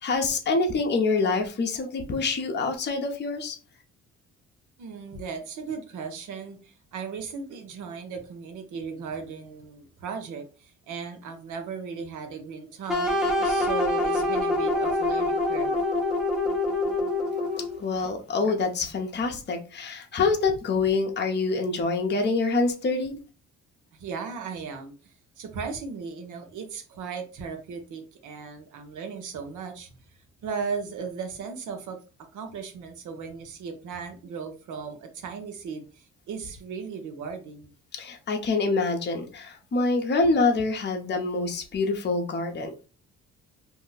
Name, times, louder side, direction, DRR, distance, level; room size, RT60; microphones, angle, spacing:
voice 1, 0.0-3.6 17.8-23.2 37.9-42.7, left 3 dB, 35° left, 0.7 m, -26 dB
voice 2, 4.8-13.1 13.4-15.7 23.9-29.9 30.4-32.0 32.3-37.7, right 5 dB, 80° right, 0.8 m, -37 dB
sound 1, 12.9-17.8, left 2 dB, ahead, 0.7 m, -25 dB
2.7 x 2.1 x 3.9 m
cardioid pair, 90°, 30 cm